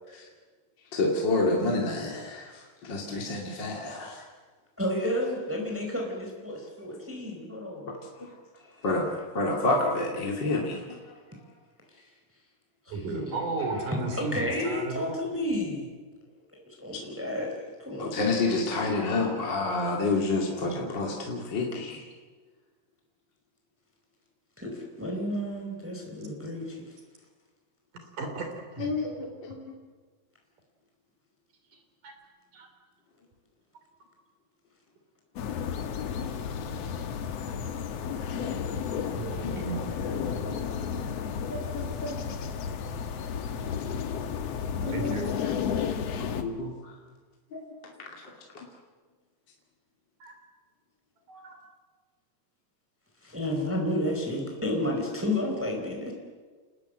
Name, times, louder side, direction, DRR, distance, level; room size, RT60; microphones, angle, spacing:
voice 1, 0.9-4.2 7.9-8.3 8.8-11.0 16.9-17.0 18.0-22.1 28.8-29.7 39.4-39.9 40.2-40.5 41.5-42.2 44.8-45.5 46.2-46.9 47.5-48.7, left 2 dB, 35° left, -1 dB, 2.9 m, -30 dB
voice 2, 4.8-7.9 12.9-13.3 13.7-15.9 16.5-17.5 17.8-18.2 24.6-26.8 53.2-56.1, left 1 dB, 5° right, 0 dB, 4.3 m, -31 dB
voice 3, 12.9-15.2 27.9-28.9 31.7-32.1 32.5-32.7 39.0-40.5 44.9-45.3 47.1-47.2 50.2-50.4 51.3-51.6, right 3 dB, 65° right, 5 dB, 5.0 m, -36 dB
sound 1, 35.4-46.4, left 7 dB, 55° left, 2.0 m, -32 dB
29.5 x 19.5 x 7.8 m, 1.4 s
omnidirectional pair, 4.0 m